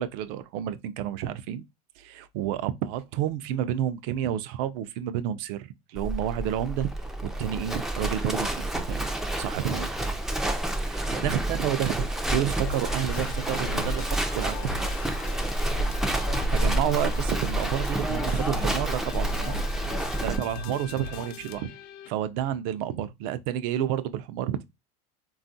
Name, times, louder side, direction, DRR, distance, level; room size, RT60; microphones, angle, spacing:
voice 1, 0.0-1.7 2.0-6.9 7.2-9.1 9.4-10.1 10.8-14.8 16.5-19.6 20.2-21.7 22.1-24.6, right 11 dB, 65° right, 0.4 m, -30 dB
Livestock farm animals working animals, 6.0-20.4, right 1 dB, ahead, 0.3 m, -29 dB
sound 1, 12.6-22.1, left 4 dB, 60° left, 0.5 m, -39 dB
3.5 x 2.3 x 2.6 m
supercardioid pair, 115°, 20 cm